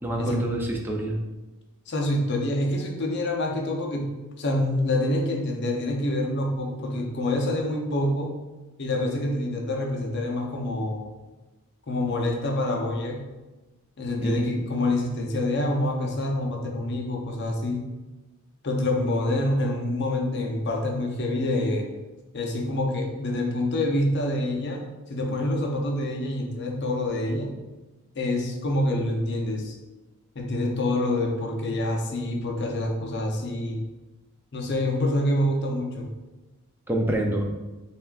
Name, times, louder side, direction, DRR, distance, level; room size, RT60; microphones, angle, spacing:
voice 1, 0.0-1.2 14.2-14.6 36.9-37.5, right 1 dB, 10° right, 1 dB, 0.4 m, -27 dB
voice 2, 1.9-4.1 4.4-8.3 8.8-11.0 11.9-13.2 14.0-17.9 18.6-21.9 22.3-24.8 25.1-27.5 28.2-29.8 30.3-33.8 34.5-36.1, left 1 dB, 50° left, 1 dB, 0.6 m, -26 dB
6.7 x 2.4 x 2.3 m, 1.1 s
head